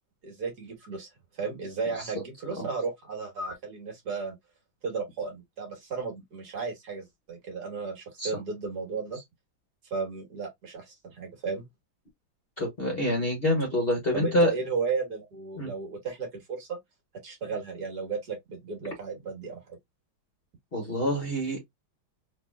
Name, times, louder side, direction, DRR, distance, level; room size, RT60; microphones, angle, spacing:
voice 1, 0.2-1.1 1.4-4.4 4.8-9.2 9.9-11.7 14.1-16.8 17.2-19.8, right 4 dB, 55° right, 1.8 m, -34 dB
voice 2, 12.6-14.5 15.6-15.7 20.7-21.6, equal, 35° left, 1.1 m, -26 dB
3.8 x 3.2 x 2.2 m
omnidirectional pair, 2.2 m